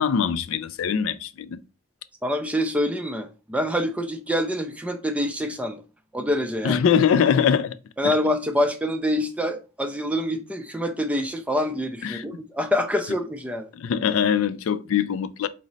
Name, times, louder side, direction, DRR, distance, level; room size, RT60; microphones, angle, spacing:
voice 1, 0.0-1.6 6.6-7.8 8.0-8.1 12.0-12.3 13.8-15.5, left 7 dB, 70° left, 0.3 m, -22 dB
voice 2, 2.2-5.8 6.1-6.8 8.0-13.7, left 1 dB, 5° right, 0.3 m, -26 dB
4.9 x 2.0 x 3.9 m
head